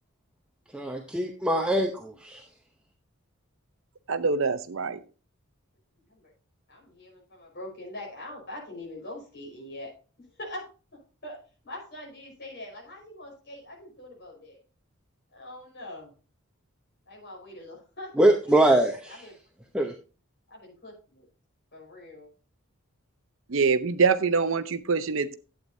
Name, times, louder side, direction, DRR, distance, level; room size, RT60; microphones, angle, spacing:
voice 1, 0.7-2.4 18.2-19.2 19.7-19.9, right 1 dB, 5° right, 2 dB, 0.7 m, -23 dB
voice 2, 4.1-5.0 23.5-25.3, right 5 dB, 65° right, 13 dB, 0.7 m, -24 dB
voice 3, 6.7-10.7 10.9-11.4 11.6-14.6 15.3-16.1 17.1-18.2 18.5-18.6 19.0-19.3 20.5-21.3 21.7-22.3, left 1 dB, 50° left, -3 dB, 5.0 m, -43 dB
11.5 x 8.7 x 2.7 m, 0.35 s
head